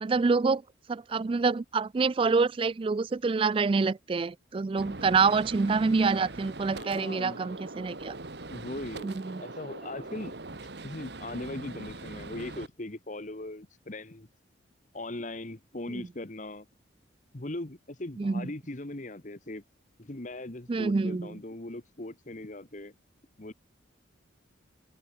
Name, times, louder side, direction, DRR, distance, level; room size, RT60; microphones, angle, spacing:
voice 1, 0.0-0.6 0.9-8.1 9.0-9.4 18.2-18.5 20.7-21.3, right 4 dB, 30° right, 0.3 m, -26 dB
Gunshot gunfire, 4.8-12.7, right 2 dB, 60° right, 1.6 m, -42 dB
voice 2, 6.8-7.4 8.5-9.1 9.4-10.3 10.8-14.3 14.9-16.7 17.3-19.6 20.0-22.9 23.4-23.5, left 1 dB, 40° left, 1.4 m, -39 dB
head